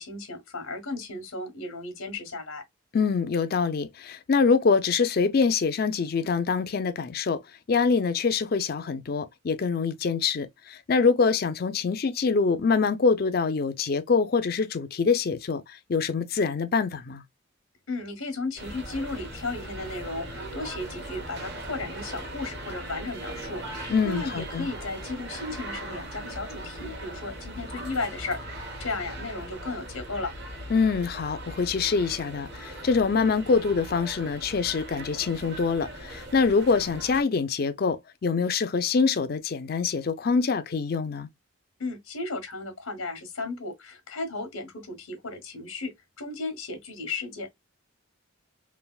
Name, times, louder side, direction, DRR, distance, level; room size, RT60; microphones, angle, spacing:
voice 1, 0.0-2.6 17.9-30.3 41.8-47.5, left 3 dB, 90° left, 1.0 m, -35 dB
voice 2, 2.9-7.4 7.7-17.2 23.9-24.7 30.7-41.3, left 5 dB, 45° left, 0.4 m, -25 dB
sound 1, 18.6-37.2, right 1 dB, 55° right, 1.2 m, -39 dB
3.3 x 2.5 x 2.2 m
head